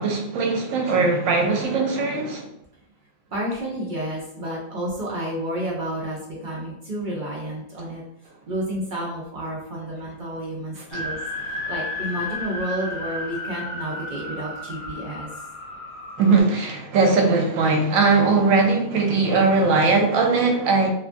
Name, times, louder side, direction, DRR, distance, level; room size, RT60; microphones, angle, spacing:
voice 1, 0.0-2.5 10.7-11.0 11.5-11.6 16.2-20.9, right 4 dB, 85° right, 2 dB, 1.0 m, -20 dB
voice 2, 3.3-8.0 8.5-11.2 11.5-15.3, right 1 dB, 50° right, -4 dB, 0.6 m, -30 dB
sound 1, 10.9-16.4, left 2 dB, 85° left, 1.2 m, -33 dB
2.9 x 2.3 x 2.5 m, 0.76 s
omnidirectional pair, 1.4 m